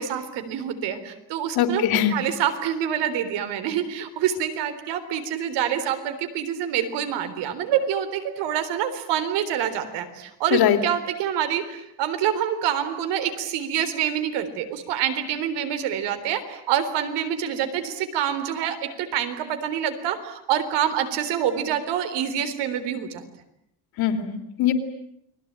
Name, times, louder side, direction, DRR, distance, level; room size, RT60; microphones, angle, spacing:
voice 1, 0.0-23.2, right 9 dB, 90° right, 9 dB, 3.8 m, -26 dB
voice 2, 1.6-2.1 10.5-10.8 24.0-24.7, left 10 dB, 60° left, 7 dB, 3.2 m, -21 dB
29.5 x 21.5 x 8.9 m, 0.78 s
cardioid pair, 175°, 41 cm